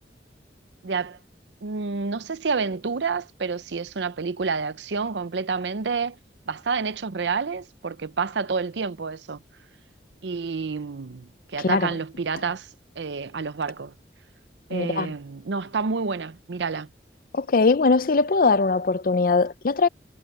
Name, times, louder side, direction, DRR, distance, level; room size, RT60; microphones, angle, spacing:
voice 1, 0.8-1.2 1.6-6.2 6.5-9.4 10.2-12.7 13.0-13.9 14.7-16.9, right 5 dB, 80° right, 0.6 m, -29 dB
voice 2, 11.6-11.9 14.7-15.1 17.3-19.9, left 3 dB, 50° left, 0.6 m, -21 dB
head